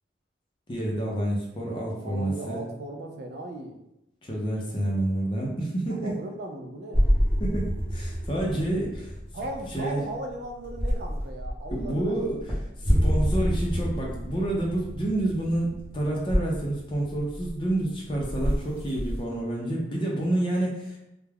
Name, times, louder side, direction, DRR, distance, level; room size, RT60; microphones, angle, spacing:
voice 1, 0.7-2.6 4.2-6.1 7.4-9.1 9.7-10.0 11.7-15.7 15.9-21.0, right 1 dB, 25° left, -2 dB, 0.5 m, -28 dB
voice 2, 2.0-3.8 5.9-7.1 9.3-12.1, right 1 dB, 55° right, 3 dB, 0.3 m, -37 dB
sound 1, 6.9-19.2, equal, 10° right, 0.7 m, -28 dB
2.3 x 2.1 x 3.3 m, 0.86 s
head